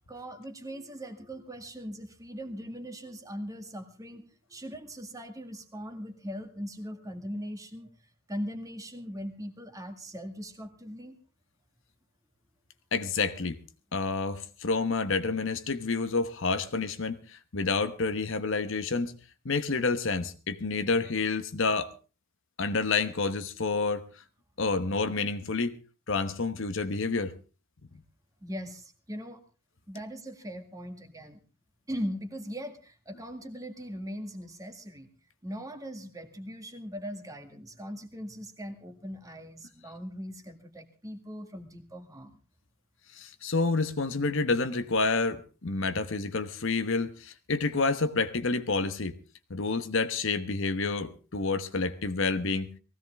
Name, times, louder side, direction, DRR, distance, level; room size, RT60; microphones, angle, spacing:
voice 1, 0.1-7.9 8.3-11.2 28.4-29.4 29.9-31.4 31.9-35.1 35.4-42.4, equal, 15° right, 1.9 m, -40 dB
voice 2, 12.9-13.6 13.9-19.1 19.4-21.9 22.6-24.0 24.6-25.7 26.1-27.3 43.1-49.1 49.5-52.7, left 3 dB, 60° left, 1.1 m, -29 dB
19.5 x 16.5 x 3.5 m
head